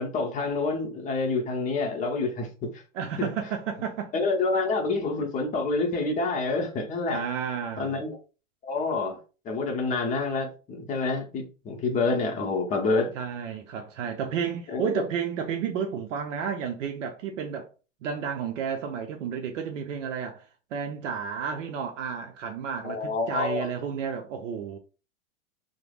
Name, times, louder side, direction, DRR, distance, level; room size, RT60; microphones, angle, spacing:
voice 1, 0.0-2.8 3.2-3.3 4.1-7.2 7.8-8.2 8.6-9.2 9.4-13.1 14.7-14.9 22.8-23.7, left 3 dB, 20° left, 0.7 m, -27 dB
voice 2, 2.9-4.1 7.1-8.0 13.1-17.7 18.0-20.4 20.7-24.8, right 7 dB, 75° right, 0.5 m, -32 dB
3.2 x 2.0 x 2.4 m
hypercardioid pair, 120°, 38 cm